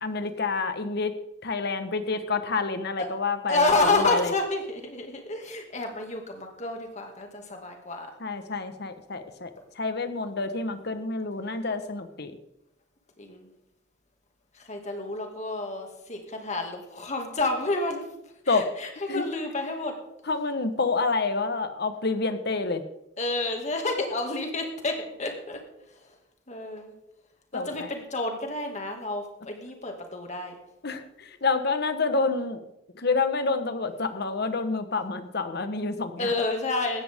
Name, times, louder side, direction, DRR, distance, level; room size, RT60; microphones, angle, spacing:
voice 1, 0.0-1.1 1.4-4.3 8.2-9.5 9.8-12.3 18.5-18.7 19.1-19.2 20.3-22.8 27.5-27.9 30.8-32.6 33.0-36.3, left 3 dB, 55° left, 9 dB, 1.3 m, -28 dB
voice 2, 3.5-8.1 10.7-10.9 13.2-13.5 14.5-18.0 18.5-20.0 23.2-25.6 26.5-26.9 27.5-30.6 36.2-37.0, left 2 dB, 40° left, 3 dB, 2.3 m, -29 dB
17.0 x 13.0 x 3.7 m, 0.86 s
head